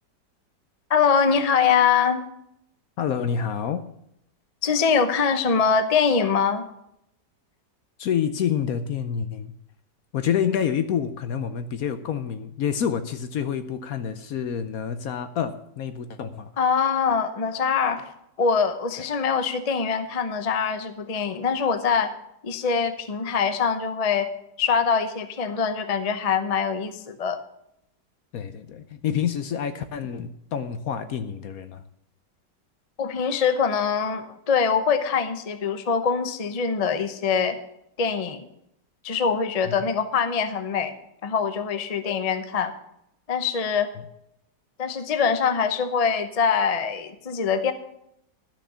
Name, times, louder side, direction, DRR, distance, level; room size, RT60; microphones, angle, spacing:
voice 1, 0.9-2.2 4.6-6.7 16.6-18.1 18.4-22.1 22.4-24.3 24.6-27.4 33.0-37.6 38.0-38.5 39.0-40.9 41.2-42.7 43.3-43.9 44.8-47.7, left 6 dB, 40° left, 9 dB, 0.5 m, -23 dB
voice 2, 3.0-3.9 8.0-9.5 10.1-16.5 28.3-31.8 39.7-39.8, left 8 dB, 65° left, 10 dB, 1.0 m, -28 dB
12.0 x 6.4 x 6.8 m, 0.77 s
omnidirectional pair, 1.9 m